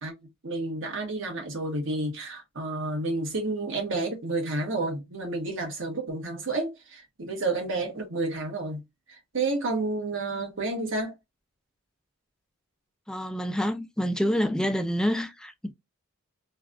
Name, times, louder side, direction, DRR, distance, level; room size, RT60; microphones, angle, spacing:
voice 1, 0.4-8.8 9.3-11.1, right 2 dB, 60° right, 1.3 m, -30 dB
voice 2, 13.1-15.7, equal, 5° left, 0.3 m, -27 dB
3.3 x 2.4 x 2.4 m
head